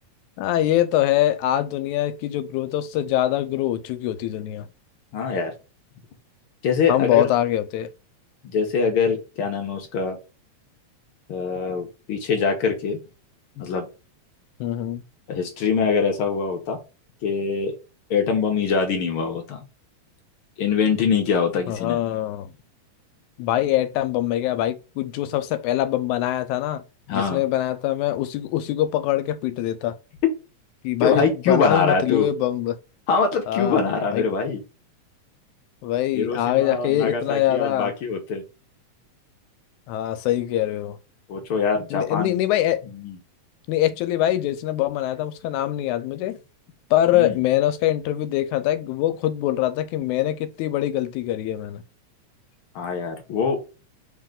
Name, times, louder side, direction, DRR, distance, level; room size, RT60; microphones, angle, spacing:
voice 1, 0.4-4.7 6.9-7.9 14.6-15.0 21.7-22.6 23.4-26.8 27.1-30.0 30.8-32.8 33.5-33.8 34.1-34.2 35.8-37.9 39.9-41.0 41.9-42.8 43.7-46.4 46.9-51.8, left 13 dB, 90° left, 2.0 m, -23 dB
voice 2, 5.1-5.5 6.6-7.3 8.4-10.2 11.3-13.0 13.6-13.9 15.3-16.8 17.2-17.8 18.1-19.7 20.6-22.0 27.1-27.4 31.0-32.3 33.1-34.6 36.1-38.4 41.3-42.3 42.9-43.2 47.1-47.4 52.7-53.6, left 5 dB, 65° left, 1.4 m, -23 dB
4.4 x 3.0 x 3.7 m
omnidirectional pair, 3.3 m